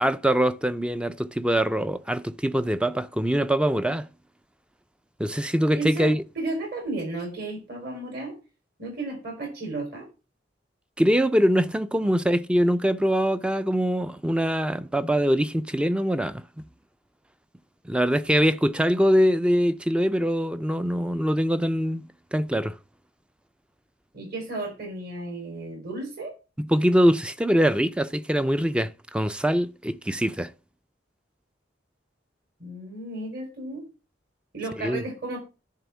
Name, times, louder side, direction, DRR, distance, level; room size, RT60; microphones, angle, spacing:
voice 1, 0.0-4.1 5.2-6.2 11.0-16.4 17.9-22.7 26.6-30.5 34.8-35.0, equal, 5° right, 0.3 m, -23 dB
voice 2, 5.7-8.3 8.8-10.1 12.0-12.1 24.1-26.3 32.6-33.8 34.5-35.4, right 2 dB, 55° right, 4.1 m, -33 dB
10.5 x 3.6 x 7.1 m
head